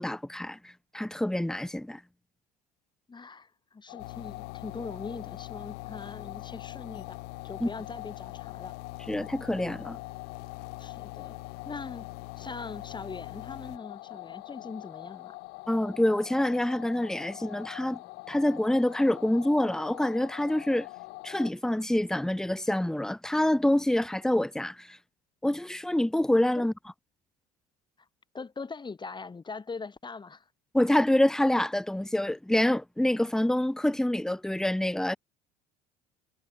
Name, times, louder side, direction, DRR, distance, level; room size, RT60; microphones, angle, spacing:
voice 1, 0.0-2.0 7.6-7.7 9.1-10.0 15.7-18.0 18.3-20.9 21.2-25.0 25.4-26.7 30.7-35.2, left 1 dB, 5° left, 0.7 m, -26 dB
voice 2, 3.1-8.7 10.8-11.4 11.6-12.1 12.4-15.4 26.5-26.7 28.3-30.5, left 4 dB, 20° left, 2.6 m, -41 dB
sound 1, 3.9-21.5, left 23 dB, 60° left, 0.5 m, -44 dB
sound 2, 4.0-13.8, left 22 dB, 75° left, 0.9 m, -44 dB
hypercardioid pair, 65°, 20 cm